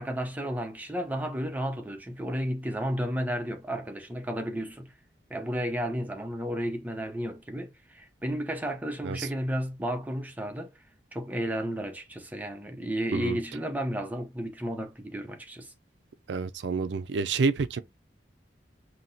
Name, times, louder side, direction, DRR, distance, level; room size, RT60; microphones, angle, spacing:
voice 1, 0.0-4.9 5.3-10.7 11.1-15.7, equal, 10° right, 0.7 m, -32 dB
voice 2, 16.3-17.8, right 4 dB, 80° right, 0.4 m, -28 dB
5.7 x 2.8 x 2.7 m
head